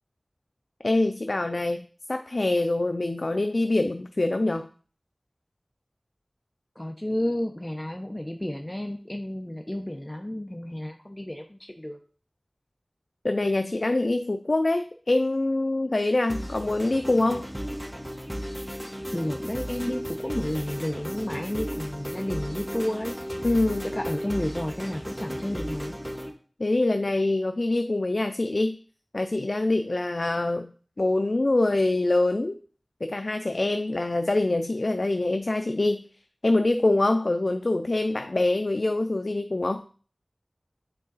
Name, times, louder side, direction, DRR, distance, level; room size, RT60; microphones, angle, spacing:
voice 1, 0.8-4.7 13.2-17.5 23.4-23.9 26.6-28.8 29.1-32.6 33.0-36.0 36.4-39.8, left 2 dB, 75° left, 8 dB, 0.4 m, -25 dB
voice 2, 6.8-12.0 18.7-18.8 19.1-23.2 23.9-26.0, left 1 dB, 25° left, 3 dB, 0.7 m, -31 dB
sound 1, 16.3-26.3, equal, 20° right, 1.2 m, -35 dB
9.0 x 3.8 x 4.1 m, 0.42 s
wide cardioid pair, 45°, 0 cm